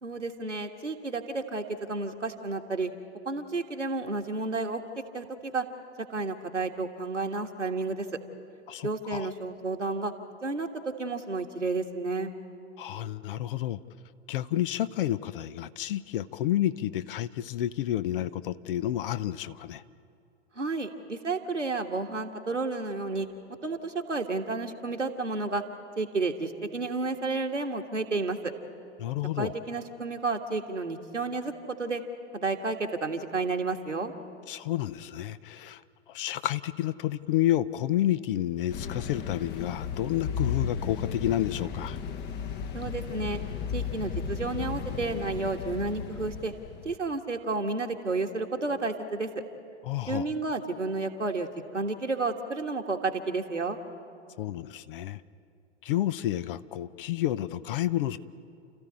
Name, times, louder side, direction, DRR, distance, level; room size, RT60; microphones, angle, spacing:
voice 1, 0.0-2.9 3.3-4.8 5.1-5.7 6.1-8.1 8.8-10.1 10.4-12.3 20.6-23.3 23.6-25.6 26.0-28.5 29.4-32.0 32.3-34.1 42.7-43.4 43.7-46.5 46.9-49.3 50.1-51.5 51.7-53.8, right 3 dB, 85° right, 3 dB, 1.8 m, -31 dB
voice 2, 8.7-9.3 12.8-13.8 14.3-19.8 29.0-29.5 34.5-35.8 36.1-42.0 49.8-50.3 54.4-55.2 55.8-58.2, left 13 dB, 50° left, 15 dB, 0.8 m, -30 dB
sound 1, 38.7-46.9, left 6 dB, 30° left, 1.1 m, -35 dB
30.0 x 14.5 x 9.8 m, 2.5 s
figure-of-eight pair, 95°, 35 cm